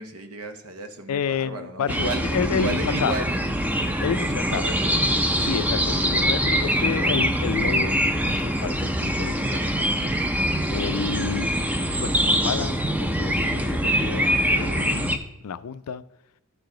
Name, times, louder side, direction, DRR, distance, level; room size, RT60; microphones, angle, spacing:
voice 1, 0.0-3.4 4.0-5.0, right 1 dB, 70° right, 7 dB, 1.0 m, -33 dB
voice 2, 1.1-3.1 4.0-4.7 5.4-10.1 10.7-11.5 12.0-14.3 14.5-16.0, left 7 dB, 80° left, 15 dB, 0.4 m, -30 dB
sound 1, 1.9-15.2, equal, 5° right, 0.5 m, -24 dB
13.5 x 4.7 x 3.8 m, 0.85 s
head